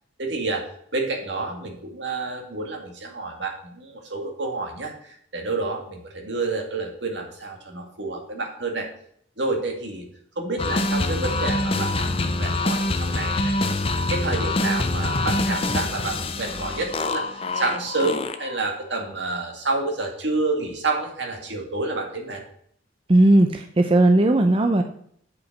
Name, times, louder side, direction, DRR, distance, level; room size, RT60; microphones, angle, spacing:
voice 1, 0.2-0.7 0.9-8.9 9.4-10.1 10.4-13.5 14.1-22.4, right 3 dB, 65° right, 2 dB, 2.1 m, -29 dB
sound 1, 10.6-18.6, left 2 dB, 30° left, 0.6 m, -25 dB
voice 2, 23.1-24.8, right 1 dB, 30° right, 5 dB, 0.6 m, -17 dB
8.4 x 5.1 x 6.6 m, 0.64 s
head